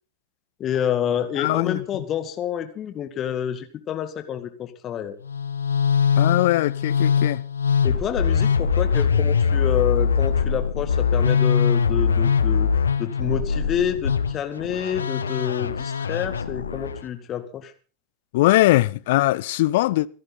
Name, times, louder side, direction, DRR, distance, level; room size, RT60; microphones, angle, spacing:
voice 1, 0.6-5.2 7.8-12.7 13.0-17.7, left 9 dB, 30° left, 2.1 m, -28 dB
voice 2, 1.4-1.8 6.2-7.4 18.3-20.1, left 17 dB, 50° left, 0.7 m, -20 dB
Musical instrument, 5.2-17.0, left 6 dB, 70° left, 1.1 m, -22 dB
25.5 x 11.0 x 4.1 m
figure-of-eight pair, 90°, 0 cm